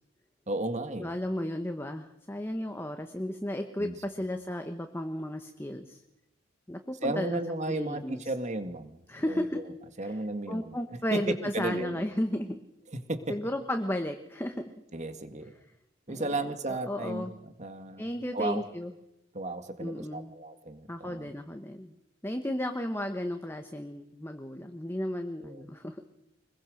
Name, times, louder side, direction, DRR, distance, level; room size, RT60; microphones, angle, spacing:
voice 1, 0.5-1.1 3.8-4.0 7.0-9.6 10.0-10.8 11.1-12.1 12.9-13.4 14.9-15.5 16.1-18.6 19.3-21.3 25.4-25.6, right 2 dB, 35° right, 9 dB, 2.1 m, -34 dB
voice 2, 1.0-6.0 6.7-7.4 7.7-8.2 9.1-9.6 10.0-10.2 10.5-12.6 13.3-14.7 16.1-17.3 18.0-18.9 19.8-20.3 20.9-21.9 22.2-26.0, left 1 dB, 10° left, 6 dB, 1.3 m, -34 dB
25.5 x 21.5 x 6.5 m, 0.84 s
head